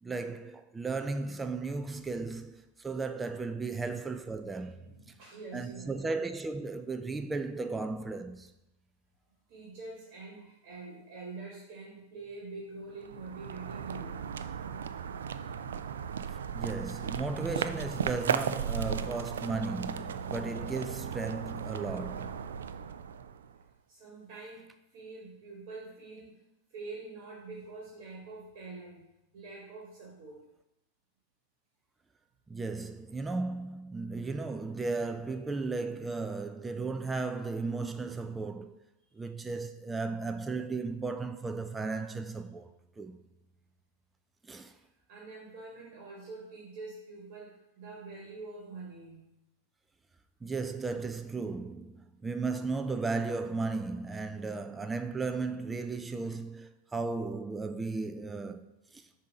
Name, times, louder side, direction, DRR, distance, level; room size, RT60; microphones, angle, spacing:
voice 1, 0.0-4.9 5.5-8.5 16.3-22.4 32.5-38.8 39.1-43.2 44.4-44.8 50.4-59.1, right 3 dB, 10° right, 0.4 m, -35 dB
voice 2, 4.8-6.1 9.5-14.2 23.9-26.4 26.7-29.0 29.3-30.5 39.1-39.4 45.1-49.4, right 3 dB, 50° right, 1.5 m, -45 dB
sound 1, 12.9-23.6, right 7 dB, 85° right, 0.3 m, -36 dB
6.6 x 2.7 x 5.3 m
hypercardioid pair, 115°, 0 cm